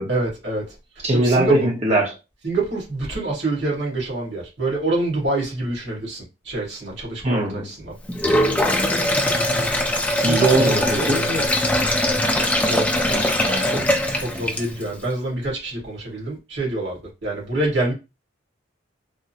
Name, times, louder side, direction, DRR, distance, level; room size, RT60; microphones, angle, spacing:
voice 1, 0.1-1.7 2.4-7.9 10.1-11.1 12.6-13.0 14.2-17.9, right 2 dB, 65° right, 1.7 m, -26 dB
voice 2, 1.0-2.1 7.2-7.7 10.2-11.5 13.1-13.9, right 2 dB, 35° right, 0.9 m, -21 dB
Sink (filling or washing), 8.1-14.9, left 1 dB, 5° left, 0.4 m, -21 dB
3.6 x 2.1 x 2.7 m
head